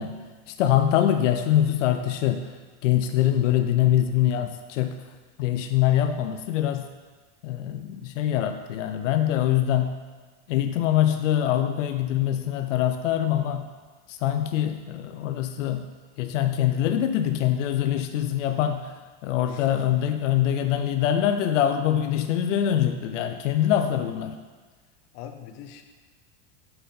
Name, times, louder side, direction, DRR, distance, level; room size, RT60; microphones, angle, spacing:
voice 1, 0.0-2.5 2.8-5.0 5.4-6.9 7.4-10.0 10.5-13.7 14.1-15.9 16.2-18.9 19.2-24.4, left 11 dB, 80° left, 7 dB, 0.6 m, -24 dB
voice 2, 3.2-3.5 19.4-19.9 25.1-25.8, left 10 dB, 45° left, 6 dB, 0.8 m, -41 dB
7.9 x 5.4 x 4.3 m, 1.4 s
supercardioid pair, 130°, 36 cm